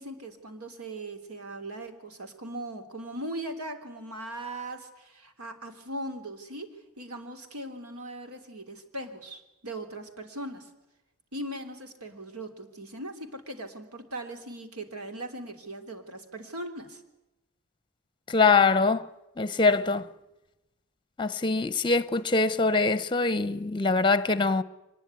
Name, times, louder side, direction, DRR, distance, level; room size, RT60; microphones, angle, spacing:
voice 1, 0.0-6.7 7.0-10.7 11.3-17.0, right 1 dB, 80° right, 3.2 m, -39 dB
voice 2, 18.3-19.1 19.4-20.1 21.2-24.6, left 4 dB, 20° left, 0.8 m, -23 dB
24.0 x 20.0 x 9.6 m
head